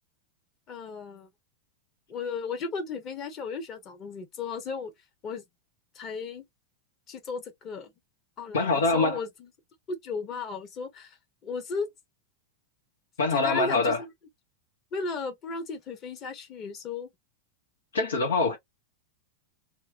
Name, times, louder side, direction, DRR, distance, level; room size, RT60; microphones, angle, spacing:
voice 1, 0.7-1.3 2.1-4.9 5.2-5.4 5.9-6.4 7.1-7.9 8.4-9.5 9.9-11.2 11.4-11.9 13.3-14.1 14.9-17.1, left 4 dB, 35° left, 1.3 m, -35 dB
voice 2, 8.5-9.2 13.2-14.0 17.9-18.6, left 3 dB, 70° left, 0.9 m, -24 dB
2.9 x 2.4 x 2.7 m
figure-of-eight pair, 90°, 0 cm